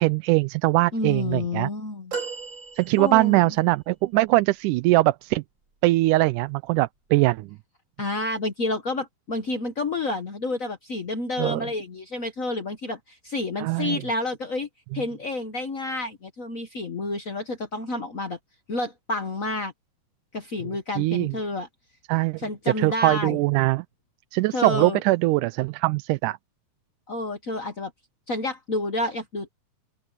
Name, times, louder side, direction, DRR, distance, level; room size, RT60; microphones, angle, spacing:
voice 1, 0.0-1.7 2.8-5.4 5.8-7.5 11.4-11.7 13.6-14.0 14.9-15.0 21.0-21.3 22.1-22.4 22.8-23.9 24.3-26.4, right 20 dB, 85° right, 2.1 m, -22 dB
voice 2, 0.9-2.1 3.0-3.5 8.0-14.7 14.9-18.4 18.7-19.7 20.3-21.7 22.4-23.4 24.5-25.0 27.1-27.9 28.3-29.5, left 2 dB, 70° left, 0.7 m, -29 dB
sound 1, 2.1-3.5 4.3-4.4, right 5 dB, 35° right, 4.2 m, -35 dB
open air
omnidirectional pair, 3.6 m